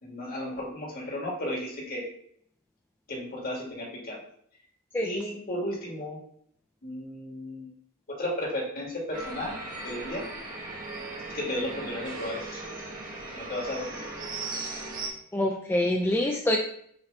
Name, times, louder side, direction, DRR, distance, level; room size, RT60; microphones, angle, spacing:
voice 1, 0.0-2.0 3.1-4.2 5.0-6.2 6.8-7.6 8.1-9.5 9.8-10.2 11.3-12.6 13.3-14.0, left 1 dB, 45° left, -3 dB, 2.2 m, -34 dB
sound 1, 9.1-15.1, right 2 dB, 40° right, 1.6 m, -38 dB
voice 2, 15.3-16.6, left 1 dB, 10° left, 1 dB, 0.4 m, -25 dB
7.0 x 3.4 x 3.9 m, 0.67 s
head